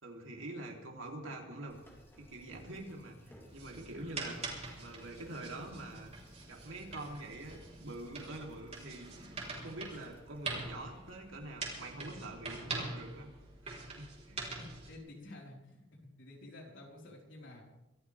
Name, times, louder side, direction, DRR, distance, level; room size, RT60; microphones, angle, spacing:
voice 1, 0.0-1.8 2.2-4.4 4.8-6.1 6.5-13.3 13.6-14.4, right 2 dB, 75° right, 0 dB, 3.6 m, -45 dB
sound 1, 1.7-12.3, equal, 10° left, 3.5 m, -60 dB
sound 2, 3.5-14.9, right 3 dB, 35° right, 4.2 m, -44 dB
voice 2, 14.6-15.9 16.2-17.6, left 1 dB, 65° left, -2 dB, 4.9 m, -51 dB
24.5 x 14.5 x 3.6 m, 0.92 s
head